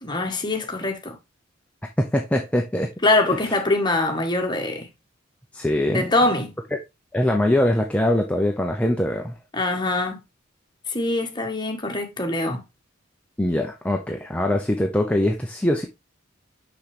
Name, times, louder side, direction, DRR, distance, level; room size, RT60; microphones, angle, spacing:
voice 1, 0.0-1.2 3.0-4.9 5.9-6.5 9.5-10.2 10.9-12.6, left 2 dB, 20° left, 1.5 m, -23 dB
voice 2, 2.0-2.9 5.5-6.1 6.7-6.8 7.1-9.3 13.4-15.9, left 1 dB, 5° left, 0.7 m, -22 dB
6.2 x 6.0 x 3.4 m
head